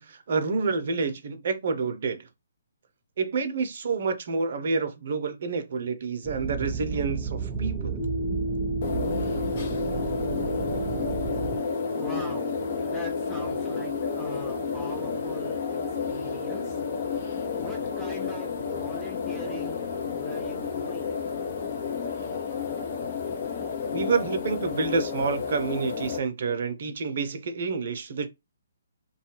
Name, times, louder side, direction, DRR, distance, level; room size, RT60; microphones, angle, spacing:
voice 1, 0.0-2.2 3.2-8.0 23.9-28.3, right 4 dB, 55° right, 0.7 m, -28 dB
sound 1, 6.2-11.6, right 5 dB, 20° right, 0.5 m, -32 dB
sound 2, 8.0-23.5, left 1 dB, 80° left, 0.5 m, -36 dB
sound 3, 8.8-26.2, left 6 dB, 45° left, 0.7 m, -32 dB
voice 2, 12.0-12.5 12.8-15.8 16.1-16.8 17.6-21.2, equal, 10° left, 0.8 m, -41 dB
2.6 x 2.3 x 2.9 m
figure-of-eight pair, 135°, 0 cm